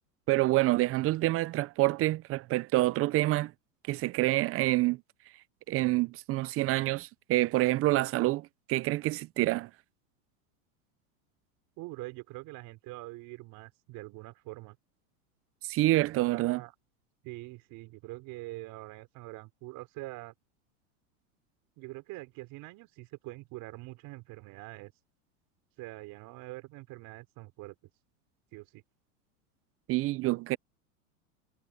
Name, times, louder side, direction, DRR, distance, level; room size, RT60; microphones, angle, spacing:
voice 1, 0.3-3.5 3.9-5.0 5.7-9.7 15.6-16.6 29.9-30.6, right 18 dB, 35° right, 0.5 m, -27 dB
voice 2, 11.8-14.8 16.1-16.7 17.2-20.3 21.8-24.9 25.8-27.7 28.5-28.8, right 21 dB, 50° right, 4.4 m, -44 dB
supercardioid pair, 120°, 42 cm